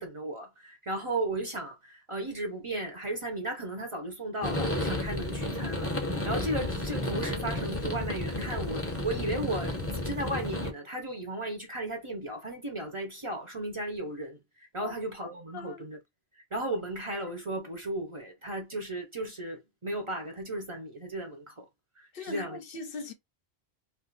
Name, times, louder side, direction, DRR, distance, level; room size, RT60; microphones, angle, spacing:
voice 1, 0.0-16.0 16.5-21.7 22.0-22.6, right 1 dB, 35° right, 0.8 m, -35 dB
sound 1, 4.4-10.7, left 1 dB, 15° left, 0.6 m, -32 dB
voice 2, 15.5-15.9 22.1-23.1, left 4 dB, 65° left, 0.8 m, -39 dB
2.5 x 2.5 x 3.9 m
omnidirectional pair, 1.1 m